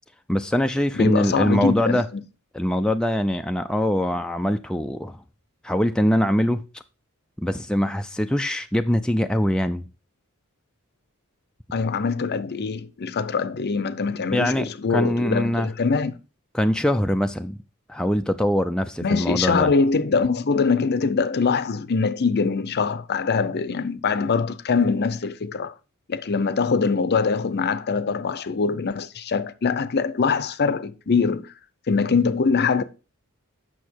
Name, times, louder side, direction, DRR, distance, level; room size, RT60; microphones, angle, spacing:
voice 1, 0.3-2.0 2.5-5.2 5.6-6.8 7.4-9.9 14.3-15.7 16.5-17.6 17.9-19.7, equal, 5° left, 0.4 m, -23 dB
voice 2, 1.0-2.0 11.7-16.2 19.0-25.7 26.1-31.5 31.9-32.8, left 5 dB, 50° left, 0.6 m, -23 dB
8.4 x 6.2 x 4.5 m
head